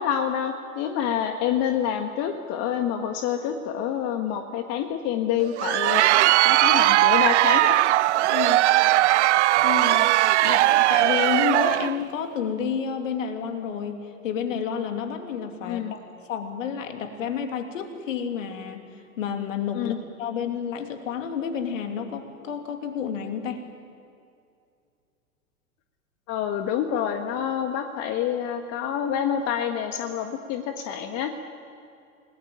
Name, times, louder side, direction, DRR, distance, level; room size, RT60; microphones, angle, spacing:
voice 1, 0.0-6.0 6.4-7.8 15.6-15.9 19.7-20.0 26.3-31.3, left 9 dB, 35° left, 6 dB, 1.6 m, -27 dB
Crowd, 5.4-12.0, right 16 dB, 55° right, 0.5 m, -19 dB
voice 2, 8.3-8.6 9.6-10.1 10.4-16.0 16.3-18.8 19.2-23.7, left 7 dB, 60° left, 5 dB, 3.0 m, -30 dB
29.5 x 20.0 x 9.0 m, 2.5 s
figure-of-eight pair, 95°, 43 cm